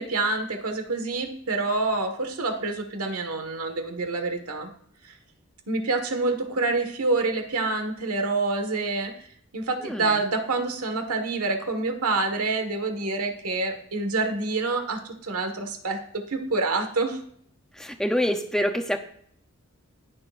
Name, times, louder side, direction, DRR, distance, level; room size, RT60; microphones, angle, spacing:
voice 1, 0.0-4.7 5.0-5.1 5.7-9.1 9.5-17.2, right 3 dB, 90° right, 5 dB, 1.7 m, -27 dB
voice 2, 17.8-19.0, equal, 5° left, 5 dB, 0.7 m, -26 dB
19.5 x 6.8 x 2.6 m, 0.62 s
head